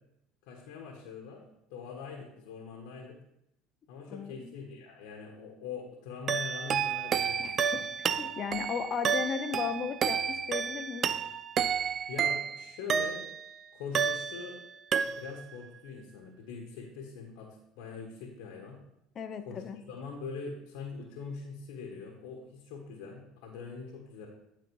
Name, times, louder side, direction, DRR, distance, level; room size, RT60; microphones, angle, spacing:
voice 1, 0.4-1.4 1.7-3.2 3.9-7.8 12.1-13.2 13.7-14.6 15.0-17.5 17.7-18.8 19.4-24.3, left 5 dB, 75° left, 1 dB, 1.4 m, -43 dB
voice 2, 4.1-4.5 7.4-7.5 8.2-11.1 19.1-19.8, left 7 dB, 45° left, 10 dB, 0.8 m, -35 dB
sound 1, 6.3-13.5 13.9-14.6 14.9-15.5, right 7 dB, 45° right, 0.5 m, -31 dB
10.5 x 4.2 x 4.7 m, 0.82 s
supercardioid pair, 90°, 0 cm